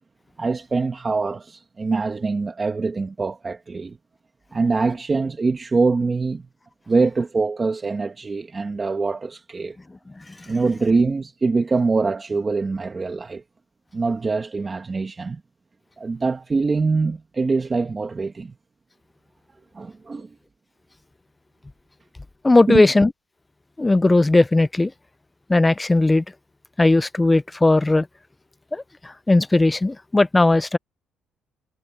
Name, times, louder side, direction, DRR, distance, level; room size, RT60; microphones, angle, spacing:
voice 1, 0.4-4.0 4.5-6.5 6.9-9.8 10.5-13.4 13.9-15.4 16.0-18.5 19.7-20.3 22.7-22.8, right 4 dB, 25° right, 1.4 m, -23 dB
voice 2, 22.4-23.1 23.8-24.9 25.5-26.2 26.8-28.1 28.7-30.8, left 2 dB, 15° left, 0.7 m, -17 dB
cardioid pair, 110°, 0 cm